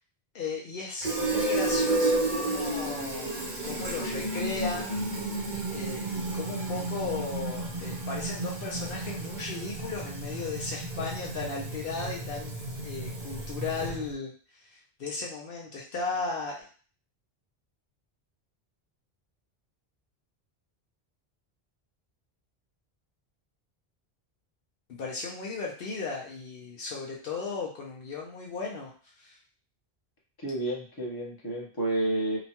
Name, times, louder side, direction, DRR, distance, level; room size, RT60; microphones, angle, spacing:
voice 1, 0.3-3.4 3.6-5.0 5.7-16.7 24.9-28.9 29.2-29.4, left 4 dB, 65° left, -2 dB, 0.8 m, -36 dB
Fill (with liquid), 1.0-14.1, right 2 dB, 55° right, 0.8 m, -32 dB
voice 2, 30.4-32.4, right 1 dB, 25° left, -4 dB, 0.8 m, -30 dB
2.9 x 2.2 x 2.8 m, 0.41 s
omnidirectional pair, 1.1 m